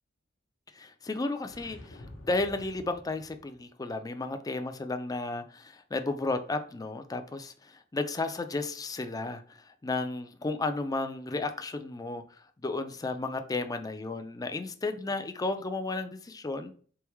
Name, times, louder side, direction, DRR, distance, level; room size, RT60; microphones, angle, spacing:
voice 1, 0.7-12.2 12.6-16.7, left 3 dB, 20° left, 0.4 m, -33 dB
sound 1, 1.4-3.6, left 1 dB, 80° left, 0.8 m, -49 dB
3.9 x 3.5 x 3.0 m
head